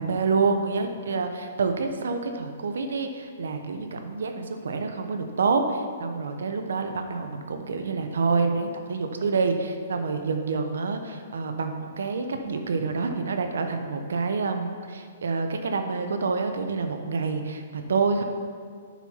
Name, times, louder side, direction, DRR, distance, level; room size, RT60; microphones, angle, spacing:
voice 1, 0.0-18.2, right 4 dB, 80° right, 6 dB, 0.9 m, -27 dB
8.2 x 4.6 x 5.6 m, 2.1 s
hypercardioid pair, 150°, 0 cm